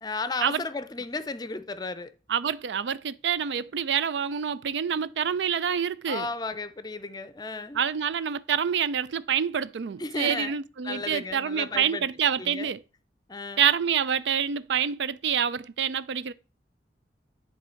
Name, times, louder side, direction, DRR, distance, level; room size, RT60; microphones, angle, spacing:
voice 1, 0.0-2.1 6.1-7.8 10.0-12.1 12.4-12.7 13.3-13.7, left 3 dB, 25° left, 0.5 m, -34 dB
voice 2, 2.3-6.3 7.7-12.8 13.6-16.3, right 8 dB, 85° right, 0.4 m, -27 dB
10.5 x 3.6 x 4.4 m
head